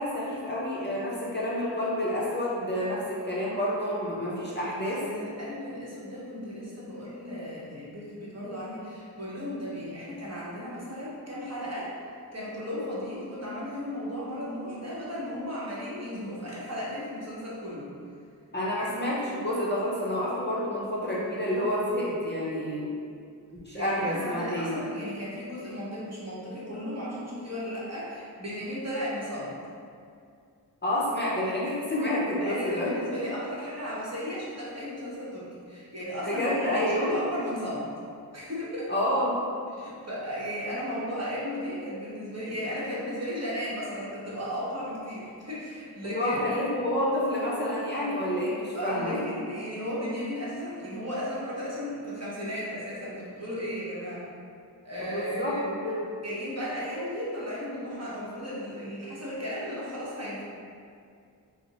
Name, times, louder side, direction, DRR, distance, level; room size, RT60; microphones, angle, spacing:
voice 1, 0.0-5.0 18.5-23.0 23.6-24.8 30.8-32.9 36.2-37.2 38.9-39.4 46.0-49.2 55.0-56.1, left 1 dB, 25° left, -7 dB, 0.5 m, -29 dB
voice 2, 4.8-11.9 12.3-17.9 18.8-18.9 23.7-29.5 32.4-37.9 38.3-38.9 39.7-46.6 48.7-54.2 54.8-55.6 56.2-60.4, equal, 40° right, -8 dB, 0.9 m, -35 dB
4.1 x 2.0 x 2.8 m, 2.4 s
wide cardioid pair, 50°, 41 cm